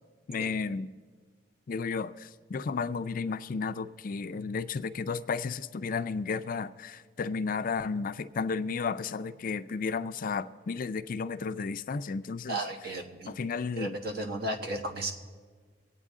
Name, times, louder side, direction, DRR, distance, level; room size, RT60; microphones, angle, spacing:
voice 1, 0.3-0.9 1.7-12.6 13.3-13.9, left 5 dB, 50° left, 12 dB, 0.4 m, -33 dB
voice 2, 12.5-13.4 13.8-15.1, right 1 dB, 60° right, 2 dB, 1.4 m, -34 dB
24.0 x 9.0 x 3.7 m, 1.5 s
head